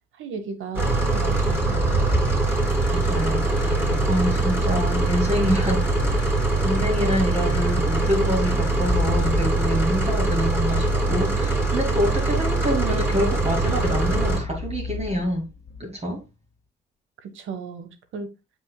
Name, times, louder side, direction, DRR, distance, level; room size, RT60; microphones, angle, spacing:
voice 1, 0.1-2.2 17.2-18.3, right 5 dB, 80° right, 1.4 m, -35 dB
sound 1, 0.7-14.4, right 2 dB, 10° right, 3.3 m, -22 dB
voice 2, 2.9-6.4 6.6-15.4 15.8-16.2, equal, 30° right, 2.5 m, -26 dB
sound 2, 3.5-16.2, left 6 dB, 40° left, 2.1 m, -35 dB
7.4 x 6.3 x 2.3 m
cardioid pair, 90°, 20 cm